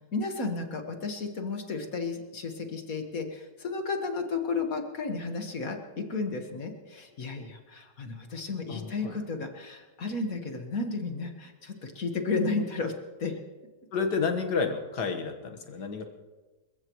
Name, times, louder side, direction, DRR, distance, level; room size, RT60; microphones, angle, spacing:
voice 1, 0.1-12.9 13.2-13.4, left 4 dB, 55° left, 4 dB, 2.0 m, -33 dB
voice 2, 8.7-9.2 13.9-16.0, left 5 dB, 70° left, 5 dB, 2.1 m, -30 dB
28.5 x 15.5 x 3.1 m, 1.3 s
omnidirectional pair, 1.8 m